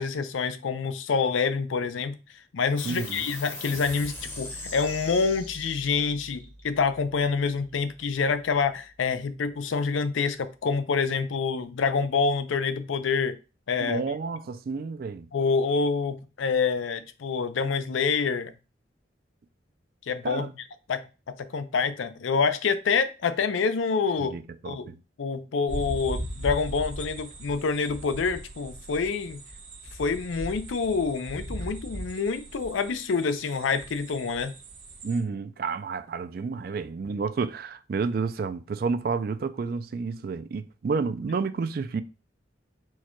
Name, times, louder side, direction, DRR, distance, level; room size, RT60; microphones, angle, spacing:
voice 1, 0.0-2.1 2.5-13.4 13.7-14.0 15.3-18.5 20.1-20.5 20.9-21.0 21.5-24.3 24.6-24.9 25.2-29.4 30.0-34.5, left 5 dB, 90° left, 0.5 m, -27 dB
sound 1, 2.8-9.7, left 1 dB, 10° left, 0.7 m, -42 dB
voice 2, 2.8-3.3 13.8-15.3 20.2-20.5 24.2-25.0 35.0-42.0, right 4 dB, 50° right, 0.3 m, -30 dB
sound 2, 25.7-35.2, right 1 dB, 65° right, 1.5 m, -39 dB
4.6 x 2.2 x 4.4 m
head